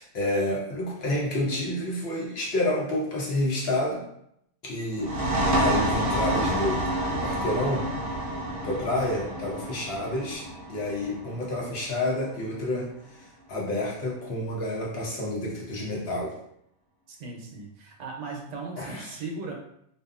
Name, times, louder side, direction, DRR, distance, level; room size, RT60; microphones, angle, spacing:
voice 1, 0.0-4.0 4.6-7.9 8.6-16.3 18.8-19.1, left 1 dB, 60° left, -3 dB, 0.9 m, -29 dB
sound 1, 4.9-12.3, right 1 dB, 55° right, 0.8 m, -28 dB
voice 2, 17.1-19.5, right 3 dB, 80° right, 0 dB, 0.9 m, -37 dB
2.5 x 2.3 x 2.4 m, 0.73 s
omnidirectional pair, 1.2 m